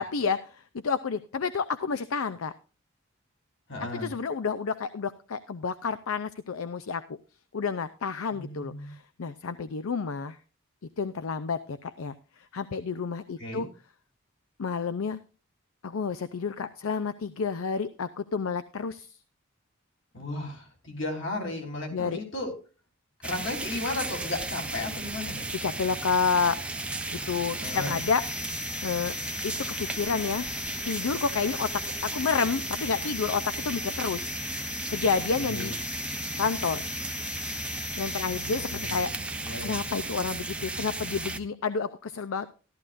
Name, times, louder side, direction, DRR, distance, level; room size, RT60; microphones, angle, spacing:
voice 1, 0.0-2.5 3.9-7.2 7.5-10.4 11.0-13.7 14.6-15.2 15.8-19.2 21.9-22.2 25.6-26.6 27.1-28.2 28.8-29.1 29.4-29.5 29.8-30.5 30.8-31.7 32.0-34.3 34.9-35.7 36.4-36.8 38.0-39.1 39.6-42.5, left 5 dB, 80° left, 13 dB, 0.5 m, -30 dB
voice 2, 3.7-4.1 8.3-8.9 13.4-13.6 20.1-22.5 23.2-25.5 27.6-28.0 35.4-35.8 38.3-39.8, left 2 dB, 60° left, 1 dB, 3.5 m, -35 dB
sound 1, 23.2-41.4, right 2 dB, 5° right, 0.6 m, -35 dB
sound 2, 27.6-39.1, left 7 dB, 45° left, 1.0 m, -40 dB
14.0 x 12.5 x 2.5 m, 0.35 s
head